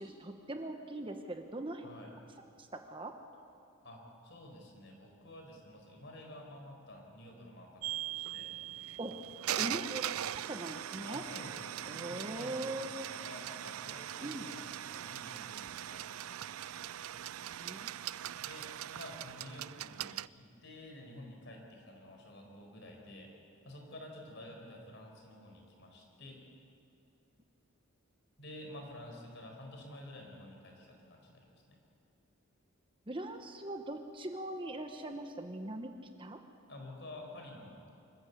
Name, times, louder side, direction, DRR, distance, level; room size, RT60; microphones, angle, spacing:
voice 1, 0.0-1.9 2.6-3.1 9.0-9.1 9.6-11.2 11.9-13.1 14.2-14.5 17.6-17.9 33.1-35.9 36.2-36.4, right 1 dB, 25° right, 5 dB, 1.1 m, -41 dB
voice 2, 3.8-8.5 11.0-16.5 16.8-16.9 18.4-23.3 23.6-26.4 28.4-31.8 36.7-37.9, left 1 dB, 55° left, 2 dB, 4.6 m, -50 dB
sound 1, 7.8-20.3, right 12 dB, 85° right, 0.4 m, -40 dB
25.5 x 14.5 x 8.4 m, 2.7 s
head